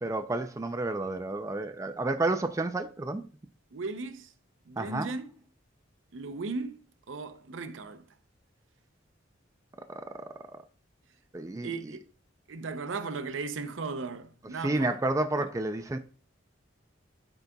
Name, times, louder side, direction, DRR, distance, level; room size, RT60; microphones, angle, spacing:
voice 1, 0.0-3.2 4.8-5.1 11.3-11.7 14.6-16.0, right 2 dB, 15° right, 0.4 m, -30 dB
voice 2, 3.7-4.3 4.7-5.3 6.1-8.0 11.6-12.0 12.5-15.0 15.4-15.5, right 4 dB, 90° right, 0.6 m, -37 dB
12.0 x 4.0 x 2.3 m
head